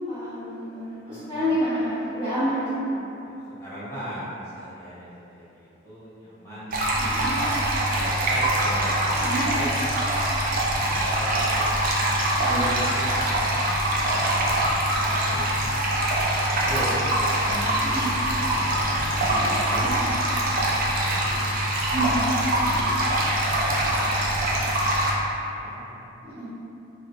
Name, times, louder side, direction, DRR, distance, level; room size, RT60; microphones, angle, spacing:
voice 1, 0.0-3.1 7.0-7.3 9.1-9.4 12.4-12.6 17.8-18.1 19.8-20.1 21.9-22.2 26.2-26.4, right 1 dB, 25° right, -18 dB, 0.9 m, -28 dB
voice 2, 1.0-1.6 3.2-6.9 7.9-9.7 10.7-13.6 13.9-14.0 14.8-15.5 16.3-16.9 17.4-18.1 18.5-19.6 20.4-21.6 22.2-22.9 23.5-24.2 25.6-26.0, equal, 15° left, -11 dB, 0.7 m, -39 dB
sound 1, 6.7-25.1, right 1 dB, 45° right, 0.4 m, -23 dB
3.0 x 2.5 x 2.4 m, 2.9 s
head